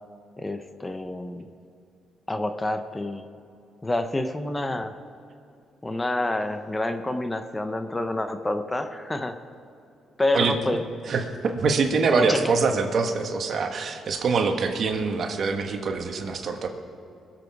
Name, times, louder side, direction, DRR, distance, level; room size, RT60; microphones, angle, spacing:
voice 1, 0.4-1.5 2.3-3.2 3.8-5.0 5.8-9.4 10.2-10.8 12.1-12.5, left 1 dB, 15° left, 8 dB, 0.8 m, -28 dB
voice 2, 11.1-16.7, right 4 dB, 55° right, 5 dB, 1.4 m, -24 dB
21.5 x 7.7 x 4.8 m, 2.6 s
cardioid pair, 90°, 0 cm